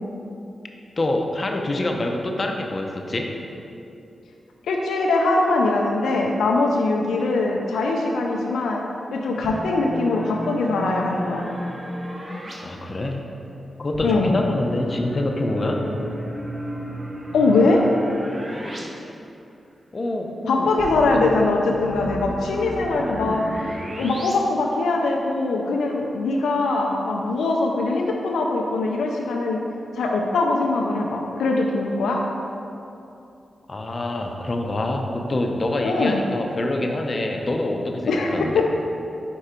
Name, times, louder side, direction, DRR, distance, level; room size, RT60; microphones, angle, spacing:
voice 1, 1.0-3.3 12.6-13.3 13.8-15.8 19.9-20.7 33.7-38.6, left 1 dB, 45° left, 2 dB, 0.6 m, -26 dB
voice 2, 4.7-8.8 9.1-11.5 14.0-14.4 17.3-17.8 20.5-29.6 29.9-32.2 35.8-36.2 38.1-38.7, left 3 dB, 90° left, 0 dB, 0.4 m, -22 dB
sound 1, 9.4-12.5 13.9-18.8 19.1-19.2 20.8-24.3, equal, 50° right, 1.1 m, -33 dB
4.9 x 4.5 x 4.3 m, 2.7 s
cardioid pair, 50°, 0 cm